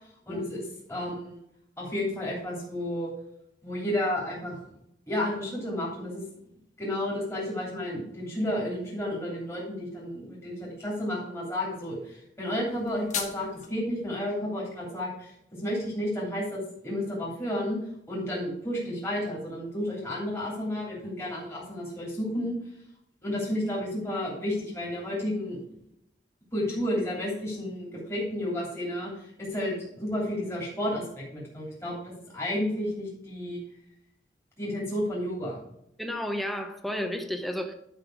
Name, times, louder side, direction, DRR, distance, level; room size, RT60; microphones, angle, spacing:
voice 1, 0.3-0.6 0.9-1.4 1.8-3.1 3.6-4.6 5.1-6.2 6.8-15.3 15.6-17.8 18.1-22.6 23.2-25.6 26.5-33.6 34.6-35.6, left 1 dB, 15° left, -5 dB, 3.1 m, -31 dB
sound 1, 12.7-13.7, left 6 dB, 45° left, 1.5 m, -36 dB
voice 2, 36.0-37.7, equal, ahead, 5 dB, 0.9 m, -32 dB
10.5 x 5.7 x 4.7 m, 0.77 s
head